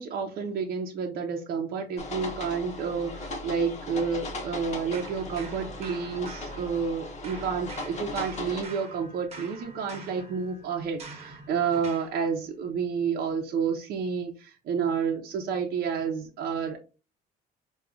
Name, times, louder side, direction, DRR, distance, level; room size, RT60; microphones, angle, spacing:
voice 1, 0.0-16.8, right 6 dB, 65° right, 1 dB, 0.6 m, -30 dB
sound 1, 2.0-8.6, left 2 dB, 45° left, 0.9 m, -38 dB
sound 2, 4.9-7.0 7.2-12.2, right 3 dB, 40° right, 0.9 m, -45 dB
4.6 x 2.3 x 2.5 m, 0.32 s
cardioid pair, 110°, 17 cm